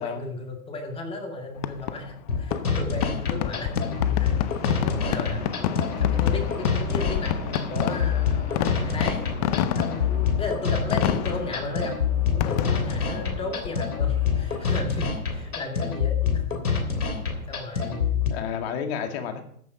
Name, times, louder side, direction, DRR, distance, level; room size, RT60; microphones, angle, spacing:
voice 1, 0.0-5.5 6.0-9.2 9.8-16.6 17.5-18.3, left 2 dB, 10° left, 3 dB, 2.0 m, -35 dB
Fireworks, 1.6-15.1, left 11 dB, 30° left, 0.6 m, -30 dB
sound 1, 2.3-18.3, left 6 dB, 85° left, 3.3 m, -26 dB
sound 2, 3.9-15.9, right 4 dB, 15° right, 1.6 m, -44 dB
voice 2, 18.3-19.4, left 7 dB, 45° left, 5 dB, 2.4 m, -31 dB
14.0 x 8.6 x 5.1 m, 0.62 s
hypercardioid pair, 130°, 43 cm